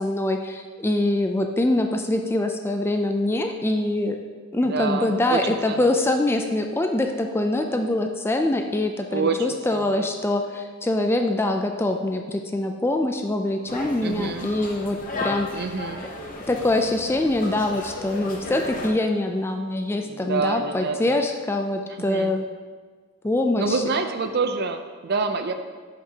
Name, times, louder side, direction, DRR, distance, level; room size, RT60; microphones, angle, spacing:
voice 1, 0.0-4.2 4.5-15.7 16.5-22.4 23.2-23.8, left 1 dB, 10° left, 4 dB, 0.3 m, -24 dB
voice 2, 4.6-5.9 9.1-10.1 14.0-14.5 15.5-16.0 20.0-21.2 21.9-22.4 23.6-25.5, right 4 dB, 50° right, 7 dB, 0.5 m, -27 dB
sound 1, 13.7-18.9, left 2 dB, 40° left, 0.9 m, -34 dB
9.8 x 5.9 x 2.8 m, 1.5 s
head